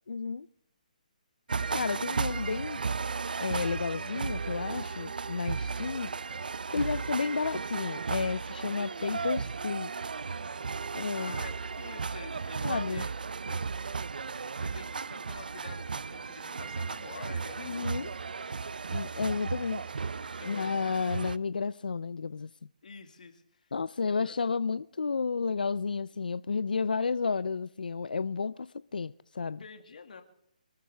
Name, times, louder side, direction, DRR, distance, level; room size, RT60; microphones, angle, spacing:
voice 1, 0.1-0.5 1.7-3.1 3.4-6.1 6.7-9.9 10.9-11.3 12.6-13.0 17.6-18.1 18.9-19.9 20.5-22.5 23.7-29.6, left 5 dB, 85° left, 0.5 m, -32 dB
sound 1, 1.5-21.4, right 5 dB, 80° right, 0.5 m, -35 dB
voice 2, 6.8-7.1 10.9-13.1 13.4-13.6 14.2-18.0 20.4-20.8 22.8-23.7 24.0-24.4 29.6-30.2, left 5 dB, 70° left, 2.0 m, -48 dB
25.0 x 13.0 x 3.4 m
hypercardioid pair, 160°, 5 cm